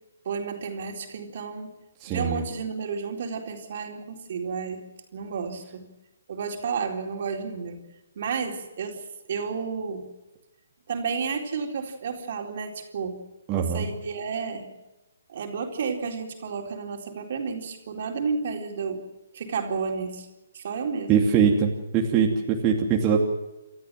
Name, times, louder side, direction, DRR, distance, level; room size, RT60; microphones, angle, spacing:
voice 1, 0.2-1.7 2.1-4.8 5.1-5.9 6.3-7.8 8.2-10.0 10.9-13.2 13.5-14.7 15.3-19.0 19.3-20.3 20.5-21.3, right 5 dB, 55° right, 3 dB, 4.1 m, -31 dB
voice 2, 2.0-2.4 13.5-13.9 21.1-23.2, right 6 dB, 25° right, -1 dB, 2.7 m, -22 dB
28.5 x 13.5 x 7.7 m, 1.0 s
hypercardioid pair, 140°, 0 cm